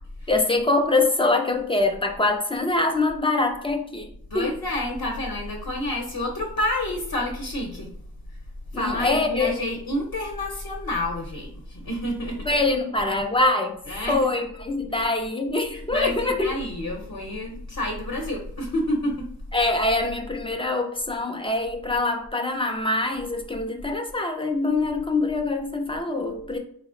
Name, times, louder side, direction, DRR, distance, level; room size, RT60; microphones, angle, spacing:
voice 1, 0.3-4.5 8.7-9.5 12.5-13.8 14.1-16.5 19.5-26.6, left 2 dB, 15° left, 4 dB, 0.3 m, -24 dB
voice 2, 4.3-7.9 8.3-8.4 8.7-12.5 13.9-14.2 15.7-19.3, left 1 dB, 50° left, 0 dB, 0.8 m, -29 dB
4.2 x 2.0 x 3.7 m, 0.64 s
wide cardioid pair, 165°, 41 cm